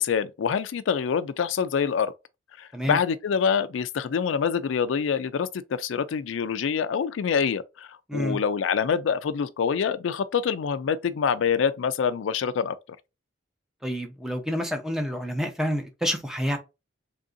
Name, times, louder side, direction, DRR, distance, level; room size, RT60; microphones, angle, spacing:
voice 1, 0.0-2.1 2.6-12.8, left 6 dB, 85° left, 0.4 m, -26 dB
voice 2, 13.8-16.6, equal, 5° right, 0.6 m, -28 dB
3.4 x 2.6 x 3.7 m
head